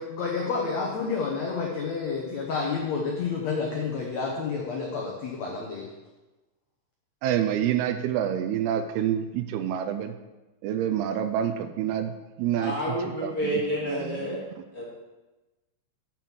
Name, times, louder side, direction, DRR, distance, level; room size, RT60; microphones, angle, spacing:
voice 1, 0.0-5.9, left 4 dB, 80° left, -1 dB, 1.5 m, -30 dB
voice 2, 7.2-10.2 10.6-13.0 13.2-14.4, right 10 dB, 80° right, 9 dB, 2.5 m, -28 dB
voice 3, 12.5-14.4 14.7-14.9, equal, 30° left, -7 dB, 2.1 m, -29 dB
7.5 x 5.9 x 7.2 m, 1.1 s
omnidirectional pair, 4.7 m